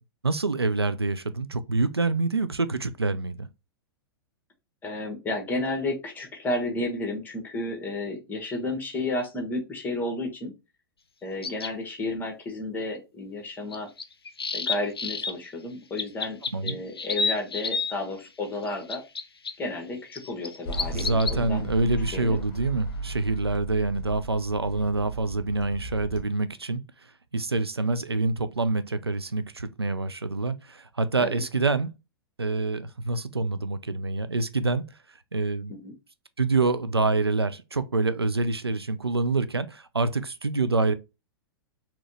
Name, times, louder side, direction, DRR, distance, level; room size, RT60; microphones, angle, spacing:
voice 1, 0.2-3.5 16.5-16.8 20.9-26.8 27.3-31.9 32.4-34.8 35.3-35.7 36.4-40.9, right 3 dB, 90° right, 0.4 m, -26 dB
voice 2, 4.8-10.5 11.2-13.9 14.5-16.4 16.6-19.0 19.6-21.7 22.1-22.4 31.2-31.4 35.7-35.9, left 2 dB, 15° left, 1.4 m, -32 dB
sound 1, 11.4-11.7 13.7-15.3 16.0-17.9 18.6-19.5 20.2-21.4, left 4 dB, 80° left, 0.5 m, -29 dB
sound 2, 20.6-26.2, right 1 dB, 40° left, 1.1 m, -36 dB
4.1 x 2.9 x 3.0 m
figure-of-eight pair, 100°, 13 cm